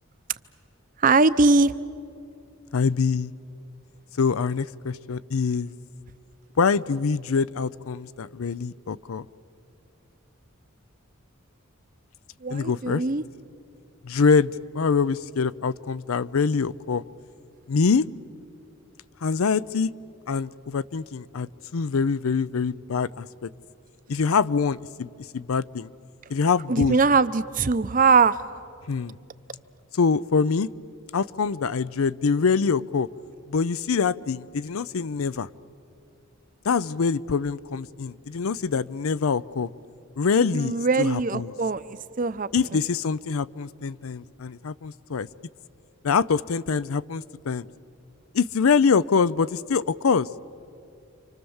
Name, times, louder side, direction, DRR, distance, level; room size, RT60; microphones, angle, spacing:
voice 1, 1.0-1.7 12.4-13.2 26.7-28.4 40.5-42.5, right 4 dB, 40° right, 14 dB, 0.6 m, -21 dB
voice 2, 2.7-3.3 4.2-5.7 6.6-9.3 12.5-13.0 14.0-17.0 17.7-18.1 19.2-19.9 20.3-23.5 24.1-25.9 26.3-27.0 28.9-29.2 29.9-30.7 31.1-33.1 33.5-35.5 36.6-39.7 40.2-41.5 42.5-45.3 46.0-47.7 48.3-50.3, left 5 dB, 85° left, 18 dB, 0.5 m, -24 dB
29.5 x 25.5 x 7.2 m, 2.5 s
head